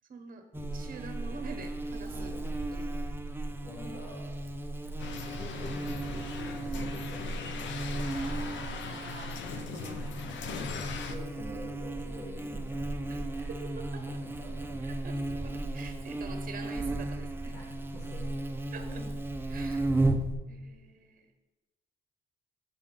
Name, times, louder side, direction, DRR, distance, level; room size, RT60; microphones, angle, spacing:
voice 1, 0.1-0.4 0.7-2.3 2.7-3.1 8.1-10.0 13.1-13.2 13.5-14.0 14.8-17.6 18.7-19.0 19.5-20.1 20.4-21.3, right 4 dB, 45° right, 6 dB, 1.0 m, -46 dB
Buzz, 0.5-20.3, right 2 dB, 10° right, 0.5 m, -35 dB
voice 2, 2.1-2.5 3.6-4.3 5.0-7.9 10.2-13.5 14.1-14.8 17.5-17.6 17.9-18.5 18.8-19.1 19.6-19.8, left 2 dB, 90° left, -6 dB, 1.6 m, -47 dB
sound 1, 5.0-11.2, left 6 dB, 70° left, 0.6 m, -40 dB
7.0 x 3.5 x 5.4 m, 1.1 s
cardioid pair, 90°, 20 cm